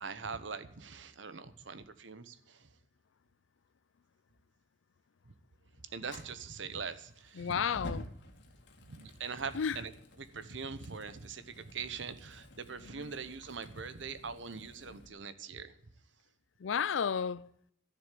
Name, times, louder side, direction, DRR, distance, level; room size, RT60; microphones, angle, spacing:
voice 1, 0.0-2.7 5.9-7.6 8.9-9.9 10.2-15.7, right 5 dB, 70° right, 1.0 m, -42 dB
Fire, 6.0-15.1, left 1 dB, 65° left, 2.1 m, -51 dB
voice 2, 7.3-8.1 9.5-9.9 12.8-13.1 16.6-17.5, left 7 dB, 80° left, 0.4 m, -33 dB
12.5 x 7.2 x 9.1 m
head